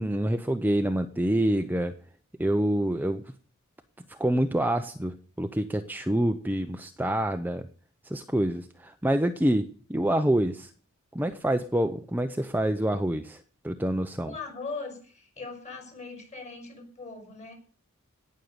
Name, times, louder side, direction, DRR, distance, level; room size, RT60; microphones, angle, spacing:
voice 1, 0.0-1.9 2.4-3.2 4.1-7.7 8.0-10.7 11.1-14.3, right 1 dB, 10° right, 7 dB, 0.6 m, -27 dB
voice 2, 14.2-17.5, left 4 dB, 30° left, 3 dB, 5.8 m, -40 dB
18.0 x 6.6 x 9.5 m, 0.43 s
head